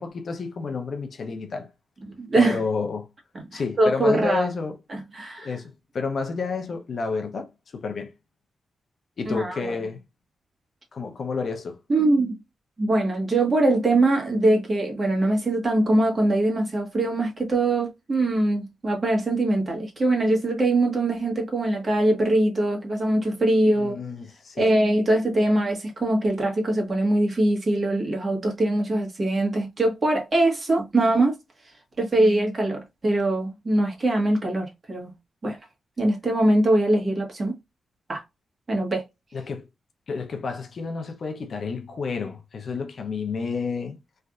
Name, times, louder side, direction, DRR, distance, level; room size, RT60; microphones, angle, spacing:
voice 1, 0.0-1.7 2.3-3.1 3.5-4.8 5.4-8.1 9.2-10.0 10.9-11.8 23.7-24.7 39.3-39.7 40.1-44.0, left 4 dB, 55° left, 0.7 m, -30 dB
voice 2, 2.2-2.6 3.5-4.5 4.9-5.5 9.3-9.8 11.9-12.4 12.8-24.0 24.6-31.4 32.0-35.1 35.4-35.6 36.0-37.6 38.1-38.2 38.7-39.0, right 2 dB, 35° right, 1.4 m, -22 dB
3.3 x 2.6 x 2.4 m
wide cardioid pair, 110°, 0 cm